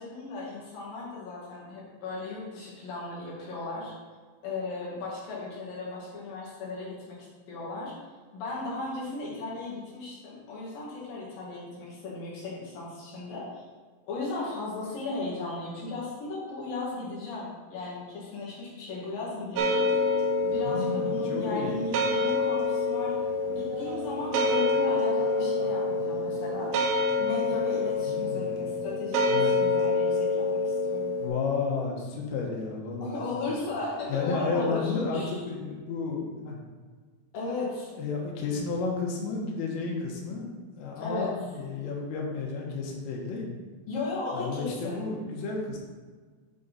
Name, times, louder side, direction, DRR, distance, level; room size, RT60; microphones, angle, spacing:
voice 1, 0.0-3.9 4.4-7.2 7.5-7.9 8.3-13.6 14.1-20.1 20.4-23.1 23.5-26.7 27.2-31.1 33.0-35.4 37.3-37.9 41.0-41.3 43.9-45.0, left 3 dB, 50° left, -7 dB, 3.4 m, -36 dB
sound 1, 19.6-31.3, left 2 dB, 80° right, 2.5 m, -27 dB
voice 2, 20.6-21.8 28.1-28.6 29.3-29.6 31.2-33.2 33.5-33.6 34.1-36.6 37.9-40.5 40.8-43.6 44.3-45.8, left 4 dB, 80° left, -1 dB, 3.9 m, -32 dB
9.5 x 5.1 x 4.2 m, 1.5 s
omnidirectional pair, 5.8 m